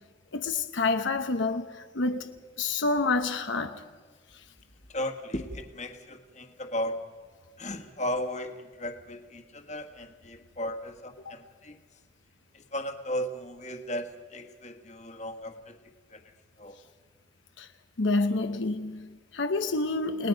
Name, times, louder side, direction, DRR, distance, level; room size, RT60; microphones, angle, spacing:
voice 1, 0.3-3.8 11.2-11.3 17.6-17.7 18.0-20.3, left 3 dB, 85° left, 1.0 m, -28 dB
voice 2, 4.9-7.0 7.6-11.8 12.5-15.7 16.1-16.2 16.6-16.8, left 1 dB, 40° left, 1.6 m, -35 dB
29.5 x 19.5 x 5.2 m
head